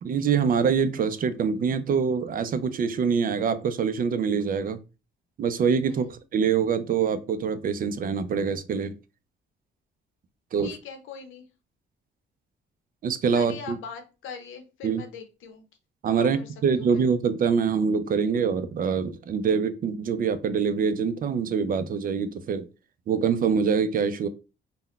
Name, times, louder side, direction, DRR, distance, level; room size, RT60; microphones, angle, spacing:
voice 1, 0.0-4.8 5.4-8.9 10.5-10.7 13.0-13.8 14.8-15.0 16.0-22.6 23.1-24.3, right 6 dB, 45° right, 12 dB, 0.4 m, -25 dB
voice 2, 5.8-6.2 10.6-11.5 13.3-15.6 16.2-17.0, left 6 dB, 85° left, 6 dB, 0.7 m, -41 dB
3.6 x 2.1 x 2.3 m, 0.31 s
cardioid pair, 90°, 20 cm